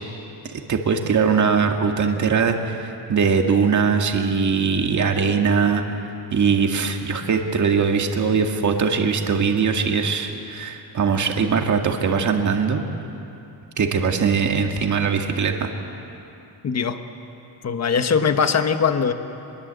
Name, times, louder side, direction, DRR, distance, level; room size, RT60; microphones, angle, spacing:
voice 1, 0.7-5.8 6.3-12.9 13.8-15.7, right 5 dB, 45° right, 3 dB, 2.0 m, -21 dB
voice 2, 16.6-17.0 17.6-19.1, left 6 dB, 40° left, 8 dB, 1.3 m, -20 dB
25.5 x 21.5 x 8.2 m, 2.9 s
cardioid pair, 145°, 41 cm